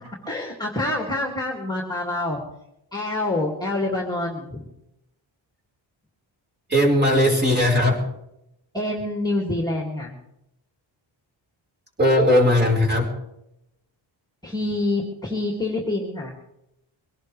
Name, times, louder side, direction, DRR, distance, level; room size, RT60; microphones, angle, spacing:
voice 1, 0.2-2.4 2.9-4.7 8.7-10.2 14.4-16.3, left 2 dB, 10° left, -1 dB, 2.4 m, -26 dB
voice 2, 6.7-8.0 12.0-13.1, left 1 dB, 20° right, -1 dB, 4.7 m, -18 dB
23.5 x 17.5 x 3.4 m, 0.85 s
wide cardioid pair, 155°, 47 cm